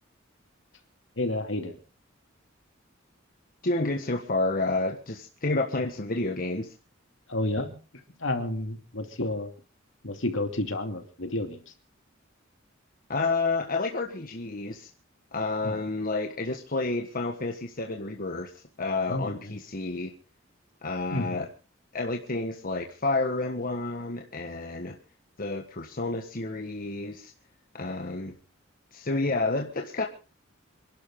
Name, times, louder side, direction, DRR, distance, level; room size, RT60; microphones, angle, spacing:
voice 1, 1.2-1.8 7.3-7.7 8.2-9.5 10.0-11.7 15.6-15.8 19.1-19.6 21.1-21.5, left 1 dB, 70° left, 6 dB, 2.8 m, -31 dB
voice 2, 3.6-6.7 13.1-14.9 15.3-18.5 18.8-20.1 20.8-21.5 21.9-25.0 25.4-27.3 27.7-28.3 28.9-30.1, left 3 dB, 45° left, 3 dB, 1.5 m, -30 dB
27.5 x 12.0 x 3.8 m, 0.35 s
head